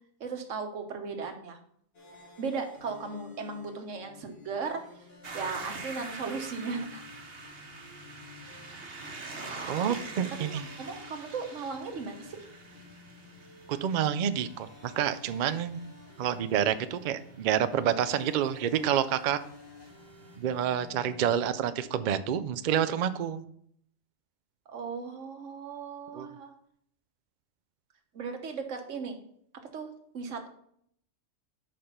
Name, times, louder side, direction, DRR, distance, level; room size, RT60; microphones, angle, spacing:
voice 1, 0.2-1.6 2.4-4.8 5.3-7.0 9.9-10.0 10.4-10.5 10.8-12.5 24.7-26.5 28.1-29.2 29.7-30.5, right 5 dB, 65° right, 5 dB, 1.4 m, -36 dB
sound 1, 1.9-21.7, left 4 dB, 50° left, 1.8 m, -53 dB
sound 2, 5.2-20.7, right 3 dB, 50° right, 1.2 m, -46 dB
voice 2, 9.7-10.7 13.7-15.8 16.2-19.4 20.4-23.4 26.1-26.3, right 9 dB, 90° right, 12 dB, 0.4 m, -28 dB
6.0 x 5.0 x 5.6 m, 0.66 s
omnidirectional pair, 1.4 m